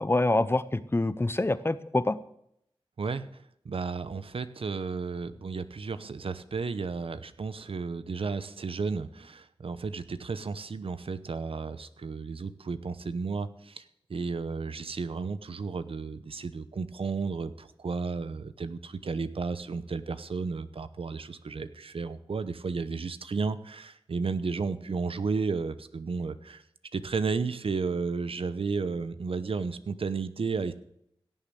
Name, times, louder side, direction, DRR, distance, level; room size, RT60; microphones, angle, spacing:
voice 1, 0.0-2.2, left 2 dB, 25° left, 15 dB, 0.8 m, -26 dB
voice 2, 3.0-13.8 14.1-26.6 26.9-30.7, right 4 dB, 70° right, 13 dB, 0.9 m, -33 dB
16.5 x 7.2 x 7.7 m, 0.74 s
wide cardioid pair, 60°, 10 cm